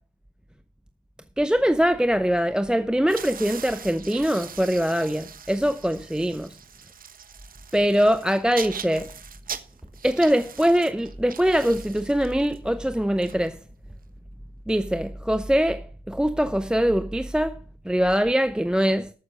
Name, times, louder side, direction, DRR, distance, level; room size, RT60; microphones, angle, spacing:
voice 1, 1.4-6.6 7.7-9.1 10.0-13.6 14.7-17.6 17.8-19.1, equal, 5° right, 0.7 m, -22 dB
sound 1, 3.0-14.0, right 7 dB, 45° right, 1.2 m, -41 dB
14.0 x 7.0 x 5.1 m
cardioid pair, 90°, 20 cm